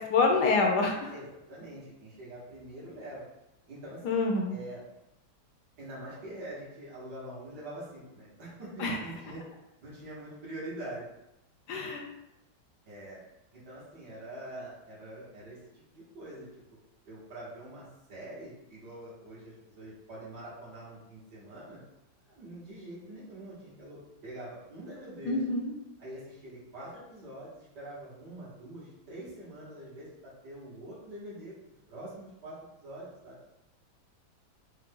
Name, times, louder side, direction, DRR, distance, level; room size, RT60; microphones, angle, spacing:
voice 1, 0.1-1.1 4.0-4.5 8.8-9.0 11.7-12.0 25.3-25.7, left 3 dB, 70° left, 1 dB, 1.1 m, -26 dB
voice 2, 1.1-3.3 3.7-4.0 4.5-4.8 5.8-9.4 9.8-11.1 11.7-11.9 12.9-13.2 13.5-16.5 17.1-21.8 22.2-25.4 26.0-33.4, right 1 dB, 55° right, -8 dB, 2.2 m, -44 dB
4.8 x 2.6 x 3.7 m, 0.88 s
omnidirectional pair, 2.1 m